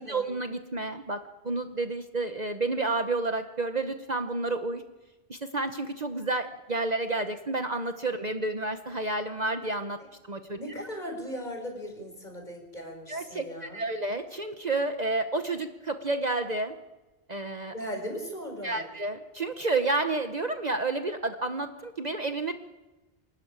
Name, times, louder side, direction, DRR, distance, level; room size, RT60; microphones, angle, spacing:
voice 1, 0.0-4.8 5.3-10.0 10.2-10.6 13.1-16.8 17.3-17.7 18.6-22.5, right 2 dB, 40° right, 7 dB, 1.1 m, -30 dB
voice 2, 10.6-14.0 17.7-18.9, equal, 40° left, 2 dB, 5.1 m, -38 dB
25.5 x 13.0 x 8.8 m, 1.1 s
omnidirectional pair, 1.1 m